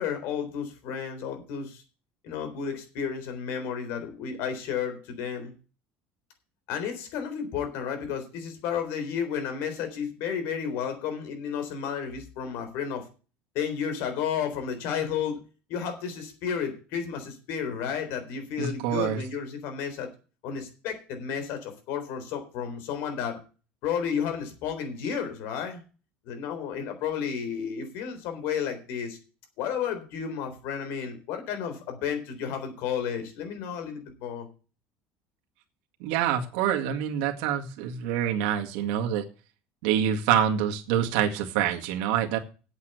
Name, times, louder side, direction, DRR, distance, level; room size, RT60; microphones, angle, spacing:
voice 1, 0.0-1.8 2.2-5.5 6.7-13.0 13.5-15.4 15.7-20.1 20.4-23.4 23.8-25.8 26.3-29.2 29.6-34.5, left 7 dB, 60° left, 7 dB, 3.8 m, -32 dB
voice 2, 18.6-19.2 36.0-39.2 39.8-42.4, right 9 dB, 85° right, 3 dB, 2.0 m, -26 dB
8.3 x 8.2 x 7.9 m, 0.35 s
cardioid pair, 170°, 4 cm